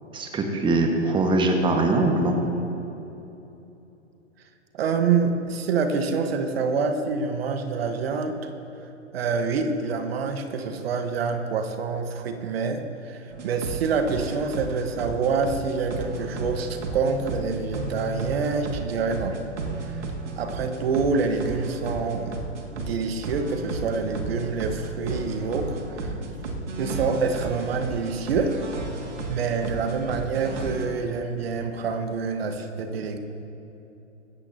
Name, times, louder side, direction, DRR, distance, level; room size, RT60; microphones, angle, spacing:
voice 1, 0.1-2.4 26.1-26.2, right 2 dB, 15° right, 3 dB, 1.4 m, -22 dB
voice 2, 4.7-8.5 9.1-19.4 19.8-20.0 20.4-22.3 22.8-26.2 26.8-28.6 29.3-33.2, right 5 dB, 55° right, 6 dB, 1.3 m, -26 dB
sound 1, 13.3-30.9, right 3 dB, 70° right, 2.1 m, -34 dB
20.0 x 16.0 x 2.8 m, 2.9 s
figure-of-eight pair, 115°, 37 cm